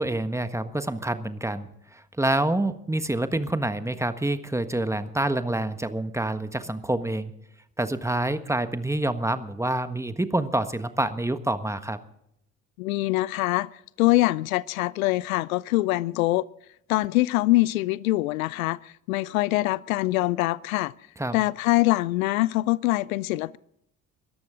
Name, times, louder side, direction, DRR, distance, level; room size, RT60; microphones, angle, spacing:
voice 1, 0.0-7.3 7.8-12.0 21.2-21.4, right 1 dB, 5° right, 1.4 m, -27 dB
voice 2, 12.8-13.7 14.0-16.4 16.9-20.9 21.3-23.6, left 19 dB, 75° left, 0.5 m, -24 dB
22.0 x 14.0 x 3.7 m
figure-of-eight pair, 50°, 41 cm